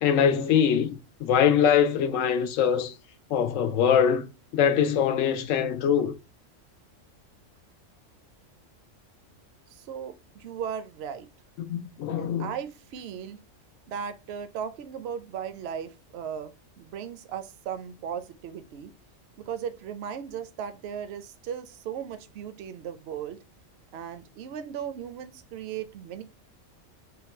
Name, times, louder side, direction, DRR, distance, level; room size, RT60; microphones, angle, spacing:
voice 1, 0.0-2.9 3.3-4.3 4.5-6.1 11.6-12.5, left 8 dB, 90° left, 1.0 m, -23 dB
voice 2, 9.7-11.3 12.2-13.4 13.9-18.9 19.4-23.4 23.9-26.2, right 8 dB, 65° right, 0.7 m, -37 dB
4.0 x 2.2 x 4.2 m
omnidirectional pair, 1.3 m